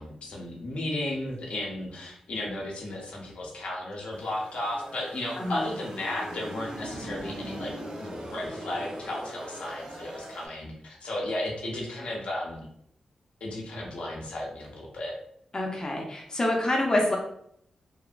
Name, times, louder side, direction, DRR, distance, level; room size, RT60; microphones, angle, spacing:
voice 1, 0.0-7.7 8.0-12.7 13.4-15.1, left 1 dB, 70° left, -2 dB, 0.7 m, -34 dB
sound 1, 4.1-10.5, right 1 dB, 55° right, 0.7 m, -40 dB
voice 2, 15.5-17.2, left 1 dB, 35° left, 0 dB, 0.6 m, -26 dB
2.9 x 2.0 x 2.5 m, 0.71 s
supercardioid pair, 40°, 2 cm